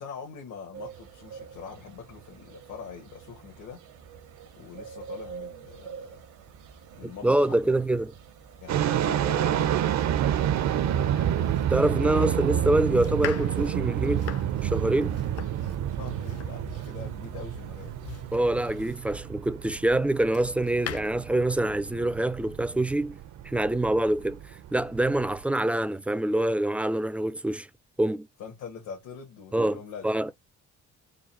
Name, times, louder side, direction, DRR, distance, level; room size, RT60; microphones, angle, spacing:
voice 1, 0.0-3.8 4.6-6.2 6.9-7.7 8.6-10.3 11.0-11.3 15.9-18.0 28.4-30.3, left 6 dB, 80° left, 1.4 m, -43 dB
sound 1, 0.7-19.0, right 6 dB, 80° right, 1.0 m, -47 dB
voice 2, 7.0-8.1 11.7-14.3 14.6-15.2 18.3-23.2 23.4-24.4 24.7-27.7 28.0-28.3 29.5-29.8 30.0-30.3, right 1 dB, 5° right, 0.3 m, -25 dB
sound 2, 8.7-25.4, right 10 dB, 65° right, 0.6 m, -29 dB
Domestic sounds home sounds, 11.1-19.3 19.9-21.0, left 11 dB, 55° left, 0.5 m, -42 dB
3.9 x 2.3 x 4.1 m
cardioid pair, 90°, 30 cm